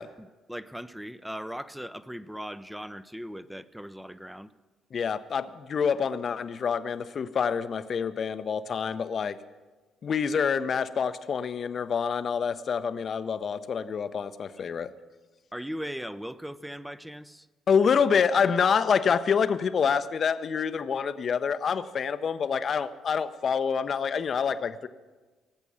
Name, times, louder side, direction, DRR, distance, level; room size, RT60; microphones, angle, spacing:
voice 1, 0.0-4.5 15.5-17.5, equal, 5° right, 15 dB, 0.7 m, -39 dB
voice 2, 4.9-9.4 10.0-14.9 17.7-24.9, left 6 dB, 50° left, 13 dB, 0.7 m, -27 dB
18.5 x 8.1 x 7.1 m, 1.3 s
hypercardioid pair, 45°, 0 cm